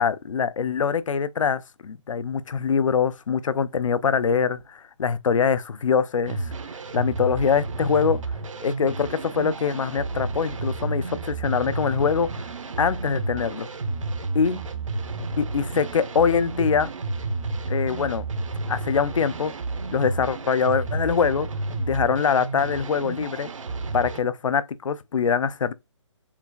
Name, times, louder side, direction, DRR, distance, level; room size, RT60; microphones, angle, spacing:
voice 1, 0.0-6.5 6.9-8.2 8.6-12.4 12.8-13.7 14.3-14.6 15.4-16.9 17.7-18.3 18.7-19.5 19.9-21.5 21.8-23.5 23.9-25.7, left 6 dB, 80° left, 0.5 m, -23 dB
sound 1, 6.2-24.2, right 3 dB, 80° right, 0.9 m, -31 dB
7.1 x 2.4 x 2.3 m
hypercardioid pair, 165°, 16 cm